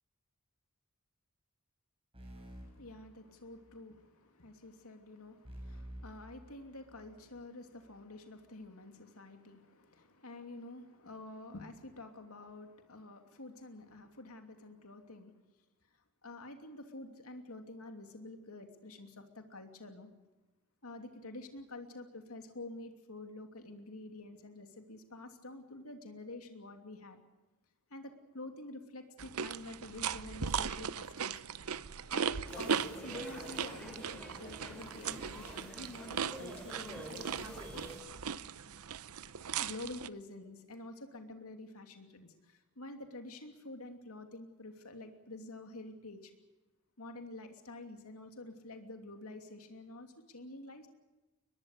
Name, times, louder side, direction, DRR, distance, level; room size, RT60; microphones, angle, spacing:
sound 1, 2.1-3.8 5.4-7.2, right 1 dB, 25° right, 7.9 m, -50 dB
voice 1, 2.3-15.4 16.2-20.1 20.8-27.2 27.9-31.8 32.1-37.9 39.2-39.3 39.6-46.3 47.0-50.9, left 2 dB, 75° left, 5 dB, 2.9 m, -48 dB
sound 2, 29.2-40.1, right 7 dB, 80° right, 0.8 m, -38 dB
sound 3, 32.5-38.0, equal, 5° left, 7.3 m, -47 dB
23.0 x 21.0 x 6.7 m, 1.1 s
head